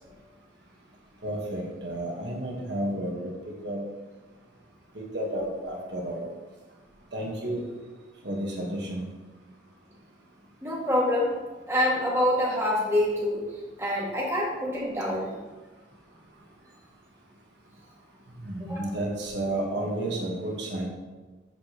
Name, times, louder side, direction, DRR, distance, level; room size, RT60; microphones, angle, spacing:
voice 1, 1.2-3.8 4.9-6.2 7.1-7.6 8.2-9.0 18.4-20.9, right 1 dB, 65° right, -1 dB, 1.3 m, -31 dB
voice 2, 10.6-11.3 11.7-13.4 13.8-15.3 18.6-18.9, left 1 dB, 15° right, -5 dB, 2.0 m, -26 dB
13.0 x 4.9 x 3.0 m, 1.3 s
head